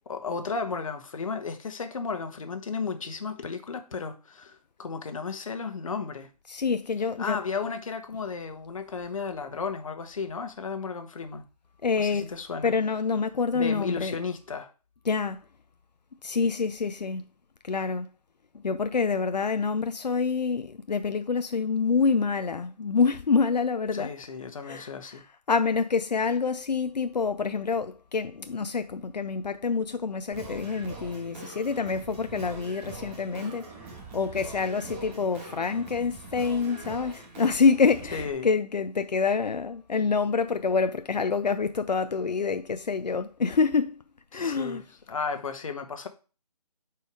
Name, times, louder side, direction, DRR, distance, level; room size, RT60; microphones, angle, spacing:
voice 1, 0.1-6.3 7.2-11.4 12.0-12.7 13.5-14.7 23.9-25.2 38.1-38.5 44.3-44.8 45.1-46.1, left 5 dB, 55° left, 1.2 m, -34 dB
voice 2, 6.5-7.4 11.8-12.3 12.6-14.2 15.1-15.4 16.2-17.2 17.6-18.1 18.6-24.1 24.6-25.2 25.5-33.7 34.1-44.0 44.3-44.8, left 5 dB, 85° left, 0.5 m, -27 dB
Singing, 30.3-38.3, right 3 dB, 20° right, 1.5 m, -43 dB
6.8 x 4.7 x 4.7 m
figure-of-eight pair, 150°, 21 cm